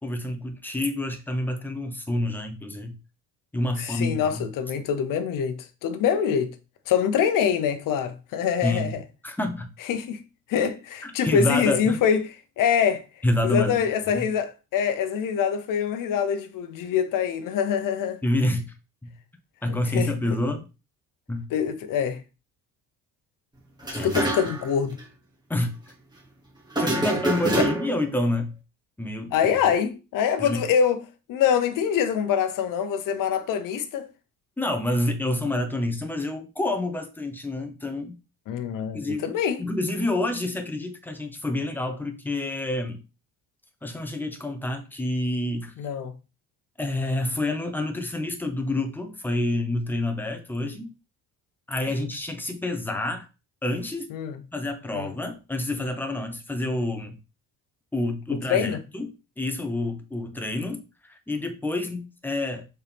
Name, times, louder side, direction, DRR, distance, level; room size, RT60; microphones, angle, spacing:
voice 1, 0.0-3.0 3.5-4.5 8.6-9.0 9.2-9.7 11.0-12.0 13.2-13.8 14.1-14.2 18.2-18.7 19.0-19.1 19.6-20.7 21.3-21.5 23.9-24.2 25.5-25.7 26.8-28.5 29.0-29.4 30.4-30.6 34.6-38.2 38.9-43.0 43.8-45.7 46.8-50.9 51.7-53.3 53.6-54.1 54.5-57.2 57.9-62.7, left 1 dB, 5° left, 1.0 m, -28 dB
voice 2, 3.8-6.5 6.9-9.0 9.9-10.2 10.5-12.2 12.6-13.0 13.4-18.2 19.7-20.4 21.5-22.2 23.9-25.0 26.8-27.0 27.6-27.7 29.3-31.0 31.3-34.1 38.5-39.6 45.8-46.1 51.9-52.0 54.1-54.3 54.9-55.1 58.3-58.8, left 7 dB, 65° left, 1.0 m, -25 dB
sound 1, 23.8-24.7 25.0-25.1 26.7-28.1, right 2 dB, 10° right, 1.6 m, -26 dB
6.6 x 4.5 x 3.6 m
cardioid pair, 150°, 35 cm